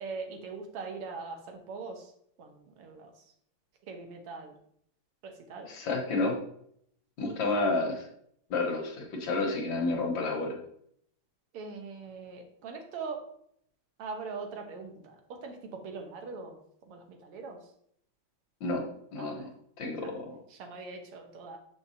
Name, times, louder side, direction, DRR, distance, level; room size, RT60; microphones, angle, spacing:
voice 1, 0.0-2.1 2.4-3.1 3.9-4.5 5.2-6.0 11.5-13.2 14.0-16.6 16.9-17.6 19.2-19.3 20.6-21.6, right 4 dB, 90° right, 4 dB, 2.0 m, -41 dB
voice 2, 5.7-6.4 7.2-8.1 8.5-10.6 18.6-19.5 19.8-20.4, left 3 dB, 60° left, 0 dB, 2.0 m, -30 dB
6.9 x 6.1 x 2.7 m, 0.69 s
omnidirectional pair, 2.4 m